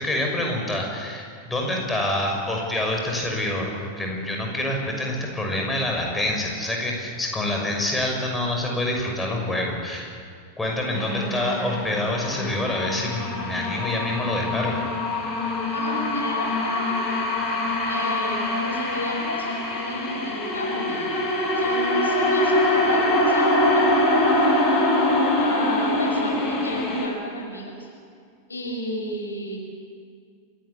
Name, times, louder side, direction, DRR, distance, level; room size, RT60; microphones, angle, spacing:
voice 1, 0.0-10.1 10.6-14.8, left 1 dB, 10° left, 0 dB, 6.2 m, -26 dB
sound 1, 10.9-27.1, left 1 dB, 30° left, 7.7 m, -24 dB
voice 2, 15.7-17.1 17.5-21.2 21.5-24.1 25.4-27.9 28.5-29.6, equal, 80° left, 1 dB, 5.6 m, -32 dB
28.0 x 18.5 x 8.5 m, 2.2 s
figure-of-eight pair, 90°, 0 cm